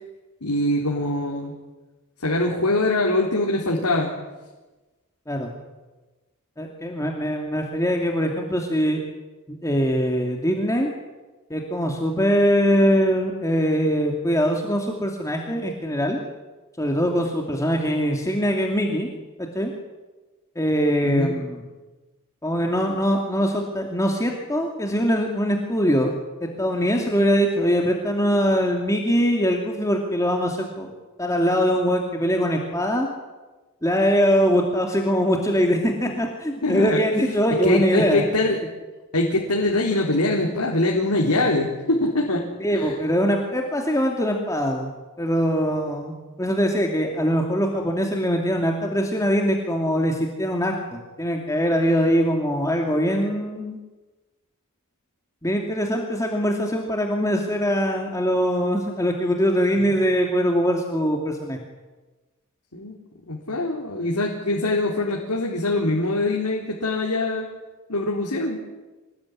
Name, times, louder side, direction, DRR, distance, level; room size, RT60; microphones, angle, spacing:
voice 1, 0.4-1.5 2.2-4.1 21.0-21.3 36.6-37.0 37.6-38.6 39.1-42.4 42.7-43.0 59.8-59.9 62.7-62.9 63.3-67.5 67.9-68.6, left 2 dB, 90° left, -2 dB, 4.0 m, -23 dB
voice 2, 6.6-9.0 9.5-10.9 11.5-16.2 16.8-19.1 19.4-19.7 20.6-21.6 22.4-26.1 26.4-30.9 31.2-33.1 33.8-38.2 42.6-44.9 45.2-46.1 46.4-53.8 55.4-61.6, equal, 15° left, 1 dB, 2.6 m, -22 dB
26.5 x 20.0 x 9.9 m, 1.2 s
head